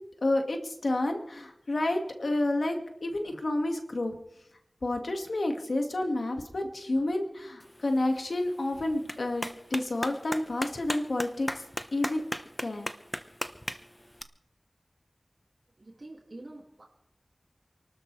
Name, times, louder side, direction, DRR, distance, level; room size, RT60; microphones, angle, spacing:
voice 1, 0.2-4.1 4.8-11.6 11.9-12.2 12.6-12.9, left 2 dB, 85° left, 4 dB, 2.0 m, -30 dB
Clapping, 7.6-14.2, equal, 15° left, 1.0 m, -39 dB
voice 2, 15.8-16.8, right 2 dB, 60° right, -1 dB, 2.4 m, -46 dB
28.5 x 13.0 x 3.4 m, 0.78 s
wide cardioid pair, 45°, 0 cm